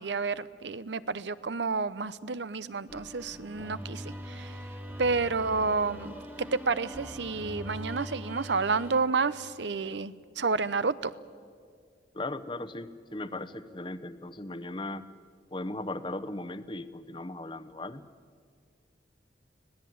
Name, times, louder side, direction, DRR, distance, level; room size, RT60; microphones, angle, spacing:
voice 1, 0.0-4.5 5.0-11.1, right 4 dB, 75° right, 16 dB, 0.8 m, -30 dB
sound 1, 2.9-9.0, equal, 10° right, 1.7 m, -42 dB
voice 2, 12.1-15.1 15.5-18.0, left 2 dB, 25° left, 14 dB, 0.8 m, -37 dB
25.0 x 17.5 x 9.4 m, 2.1 s
head